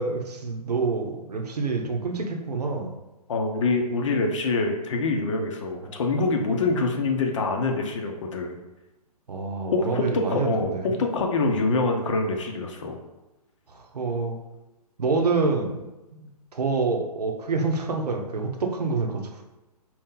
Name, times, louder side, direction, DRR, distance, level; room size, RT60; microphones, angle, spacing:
voice 1, 0.0-2.9 5.8-6.0 9.3-10.9 13.9-14.4 15.0-15.9 16.5-19.3, right 4 dB, 75° right, 4 dB, 0.8 m, -27 dB
voice 2, 3.3-8.6 9.7-13.0, left 3 dB, 50° left, 3 dB, 0.8 m, -25 dB
4.3 x 3.0 x 3.8 m, 1.0 s
figure-of-eight pair, 135°, 20 cm